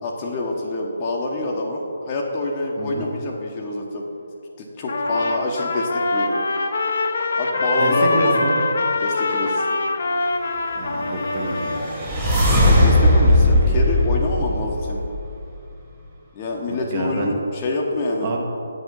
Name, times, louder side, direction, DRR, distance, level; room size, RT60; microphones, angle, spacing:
voice 1, 0.0-4.1 4.6-6.4 7.3-8.4 9.0-9.7 12.4-15.0 16.3-18.3, left 2 dB, 30° left, -1 dB, 1.0 m, -26 dB
voice 2, 2.8-3.1 7.8-8.6 10.7-11.7 13.3-13.8 16.7-17.3 18.2-18.4, right 2 dB, 35° right, 0 dB, 1.4 m, -27 dB
Trumpet, 4.9-12.0, left 3 dB, 55° left, 0.8 m, -23 dB
sound 1, 11.2-15.4, left 1 dB, 15° right, 1.8 m, -18 dB
8.8 x 5.9 x 5.4 m, 2.6 s
figure-of-eight pair, 145°, 0 cm